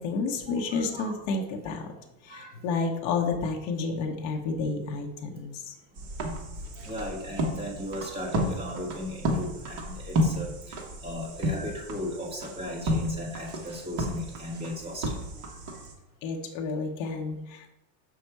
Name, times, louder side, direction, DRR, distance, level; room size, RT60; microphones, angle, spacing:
voice 1, 0.0-1.9 2.2-5.7 16.2-17.7, left 4 dB, 35° left, 2 dB, 0.7 m, -30 dB
voice 2, 0.5-1.1 2.3-2.7 6.5-15.9, left 1 dB, 10° right, -3 dB, 1.4 m, -37 dB
sound 1, 6.0-15.9, equal, 35° right, 1.4 m, -32 dB
6.4 x 5.4 x 4.5 m, 0.91 s
supercardioid pair, 175°, 48 cm